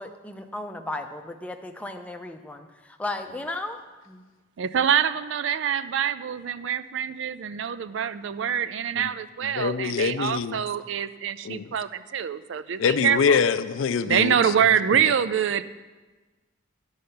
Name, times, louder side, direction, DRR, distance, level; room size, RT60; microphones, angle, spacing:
voice 1, 0.0-3.8 4.1-4.3, left 2 dB, 5° left, 5 dB, 0.5 m, -35 dB
voice 2, 4.6-13.4 14.1-15.6, right 8 dB, 65° right, 14 dB, 0.4 m, -25 dB
voice 3, 9.4-10.6 11.4-11.7 12.8-14.5, left 6 dB, 70° left, 13 dB, 0.4 m, -24 dB
11.5 x 5.6 x 6.6 m, 1.3 s
head